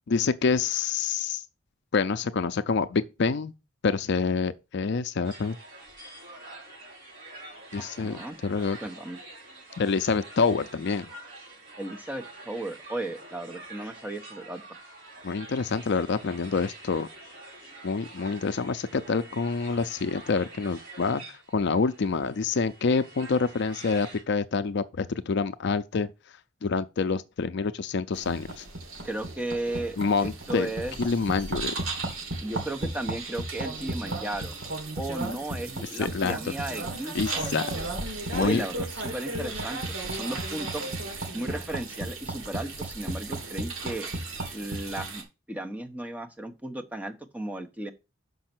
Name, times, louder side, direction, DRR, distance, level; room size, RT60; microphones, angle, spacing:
voice 1, 0.1-1.4 1.9-3.5 3.8-5.6 7.7-8.8 9.8-11.1 15.2-17.1 17.8-26.1 26.6-28.6 30.0-30.7 31.0-31.8 36.0-36.5 37.1-37.8 38.3-38.6, left 4 dB, 55° left, 0.5 m, -27 dB
sound 1, 5.2-24.2, right 2 dB, 45° right, 4.7 m, -47 dB
voice 2, 7.8-8.4 8.8-9.2 11.8-14.6 29.0-31.0 32.4-34.6 35.0-37.5 38.4-40.9 41.3-44.1 44.5-45.2 45.5-47.9, right 1 dB, 5° right, 0.9 m, -35 dB
sound 2, 28.1-45.2, right 2 dB, 75° right, 2.8 m, -34 dB
6.4 x 5.4 x 6.0 m
head